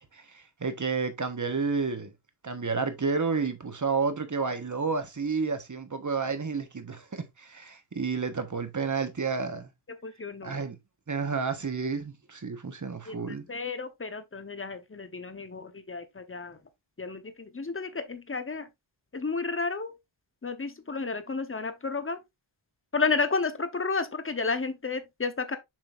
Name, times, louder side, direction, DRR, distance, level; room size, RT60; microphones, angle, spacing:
voice 1, 0.1-2.1 2.4-9.7 10.4-10.8 11.1-13.5, right 4 dB, 40° right, 1.4 m, -30 dB
voice 2, 10.0-10.6 13.1-16.6 17.0-18.7 19.1-19.9 20.4-22.2 22.9-25.6, left 4 dB, 25° left, 1.1 m, -32 dB
7.5 x 5.5 x 2.6 m
wide cardioid pair, 105°, 47 cm